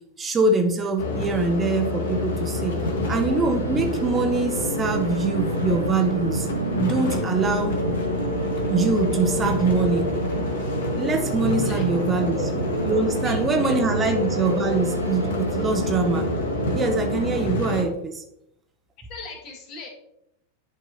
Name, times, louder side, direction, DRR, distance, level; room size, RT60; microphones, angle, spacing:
voice 1, 0.2-2.8 3.1-6.5 6.8-7.8 8.7-10.1 11.0-12.4 12.9-16.3 16.7-18.2, right 3 dB, 20° right, 4 dB, 0.8 m, -24 dB
sound 1, 1.0-17.8, left 1 dB, 60° left, 1.3 m, -28 dB
sound 2, 1.2-17.4, right 1 dB, 85° right, 0.8 m, -31 dB
voice 2, 13.2-13.8 14.0-14.1 19.1-19.9, left 4 dB, 40° left, 1 dB, 1.8 m, -38 dB
11.0 x 4.8 x 2.8 m, 0.81 s
figure-of-eight pair, 90°, 0 cm